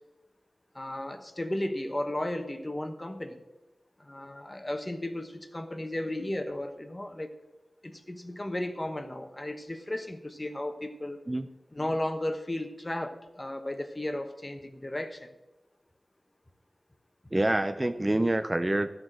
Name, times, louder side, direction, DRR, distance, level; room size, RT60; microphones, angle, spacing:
voice 1, 0.7-3.4 4.0-7.3 7.8-11.2 11.7-15.3, left 1 dB, 25° left, 7 dB, 1.0 m, -34 dB
voice 2, 17.3-19.0, right 1 dB, 25° right, 9 dB, 0.5 m, -26 dB
12.5 x 5.8 x 7.8 m, 1.1 s
wide cardioid pair, 85°, 0 cm